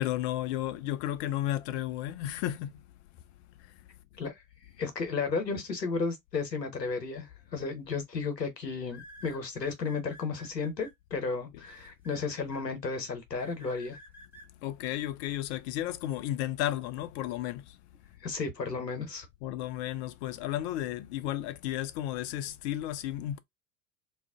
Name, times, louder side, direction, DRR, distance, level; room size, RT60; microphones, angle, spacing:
voice 1, 0.0-2.7 3.6-3.7 14.6-17.8 19.4-23.4, left 13 dB, 45° left, 0.4 m, -33 dB
voice 2, 4.8-14.0 18.2-19.3, left 4 dB, 90° left, 0.8 m, -33 dB
sound 1, 7.4-7.7 8.9-10.9 11.6-12.6 13.4-14.5, left 1 dB, 5° right, 1.0 m, -51 dB
2.4 x 2.1 x 3.5 m
figure-of-eight pair, 75°, 48 cm